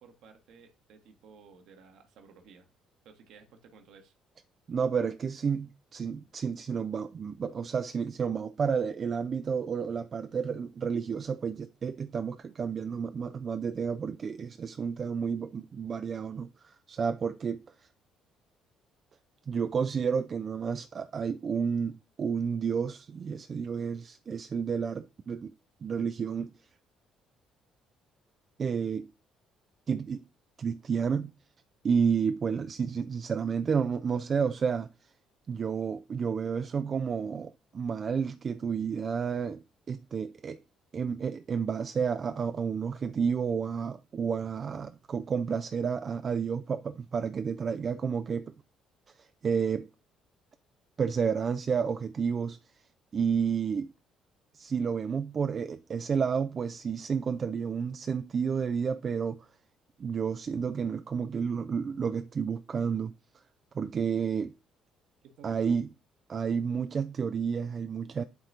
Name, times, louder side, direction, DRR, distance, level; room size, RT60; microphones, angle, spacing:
voice 1, 0.0-2.7 3.0-4.1 65.2-65.8, right 5 dB, 60° right, 1.2 m, -55 dB
voice 2, 4.7-17.6 19.5-25.5 25.8-26.5 28.6-29.1 29.9-30.2 30.6-31.3 31.8-34.9 35.5-40.6 40.9-48.5 49.2-49.9 51.0-52.6 53.1-53.9 54.5-59.5 60.0-63.1 63.7-64.5 65.4-65.9 66.3-68.2, right 6 dB, 40° right, 0.4 m, -31 dB
10.5 x 4.1 x 2.6 m
figure-of-eight pair, 45°, 0 cm